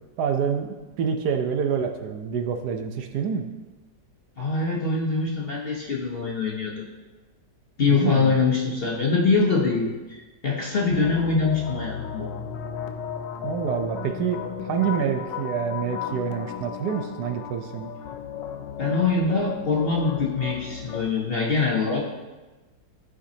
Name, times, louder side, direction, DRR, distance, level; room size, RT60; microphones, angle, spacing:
voice 1, 0.2-3.5 7.9-8.4 13.4-17.9, right 7 dB, 70° right, 5 dB, 1.1 m, -27 dB
voice 2, 4.4-6.9 7.8-12.3 18.8-22.0, left 4 dB, 45° left, -3 dB, 0.8 m, -24 dB
sound 1, 10.9-21.0, left 7 dB, 85° left, 1.3 m, -34 dB
13.0 x 5.1 x 2.7 m, 1.2 s
omnidirectional pair, 1.9 m